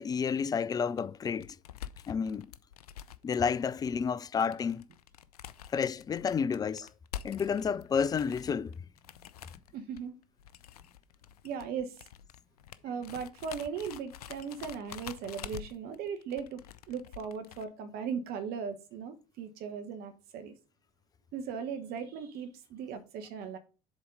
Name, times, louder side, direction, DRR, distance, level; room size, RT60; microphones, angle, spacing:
voice 1, 0.0-1.6 2.1-2.5 3.2-4.8 5.7-6.9 7.2-8.7, left 6 dB, 20° left, 0.4 m, -30 dB
sound 1, 0.9-17.6, left 10 dB, 85° left, 0.5 m, -47 dB
voice 2, 9.7-10.2 11.4-12.0 12.8-20.5 21.3-23.6, right 6 dB, 55° right, 1.3 m, -38 dB
7.2 x 4.2 x 5.2 m
hypercardioid pair, 70°, 19 cm